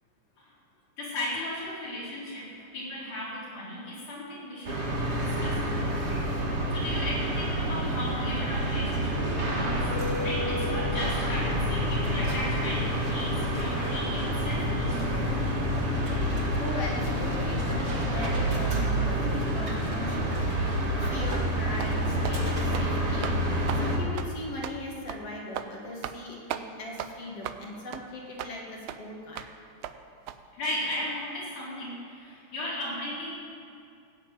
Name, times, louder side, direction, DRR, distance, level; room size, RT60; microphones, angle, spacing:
voice 1, 1.0-6.3 6.7-9.9 10.2-15.2 30.5-33.3, left 1 dB, 70° left, -7 dB, 5.8 m, -36 dB
Porter Airline Lobby Int, 4.6-24.0, equal, 30° right, 1.5 m, -28 dB
voice 2, 16.6-23.4 23.7-29.4, left 1 dB, 55° left, -2 dB, 2.6 m, -39 dB
sound 1, 21.3-21.5 21.8-22.0 22.2-22.4 22.7-22.9 23.2-23.4 23.7-23.8 24.2-24.3 24.6-24.8 25.1-25.2 25.5-25.7 26.0-26.2 26.5-26.6 27.0-27.1 27.4-27.6 27.9-28.0 28.4-28.5 28.9-29.0 29.4-29.5 29.8-29.9 30.3-30.4, right 12 dB, 85° right, 1.4 m, -36 dB
16.5 x 7.5 x 9.0 m, 2.4 s
omnidirectional pair, 3.6 m